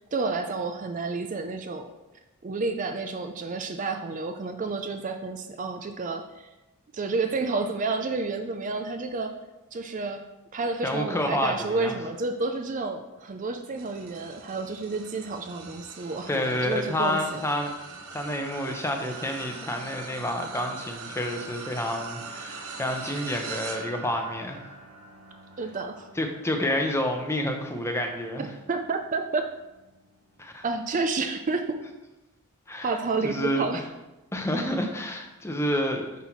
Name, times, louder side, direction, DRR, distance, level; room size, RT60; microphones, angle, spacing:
voice 1, 0.1-1.9 2.4-6.5 6.9-9.3 9.7-10.2 10.5-17.4 25.6-26.1 28.4-29.5 30.6-31.8 32.8-33.9, right 3 dB, 35° right, 6 dB, 0.4 m, -30 dB
voice 2, 10.8-11.9 16.3-17.7 18.1-24.6 26.2-28.5 30.4-30.6 32.7-32.9 33.2-33.7 34.3-36.1, left 1 dB, 10° left, 3 dB, 0.7 m, -29 dB
sound 1, 13.8-29.3 29.8-30.1 31.3-31.4, right 4 dB, 70° right, 0.8 m, -42 dB
5.9 x 5.5 x 4.4 m, 1.0 s
head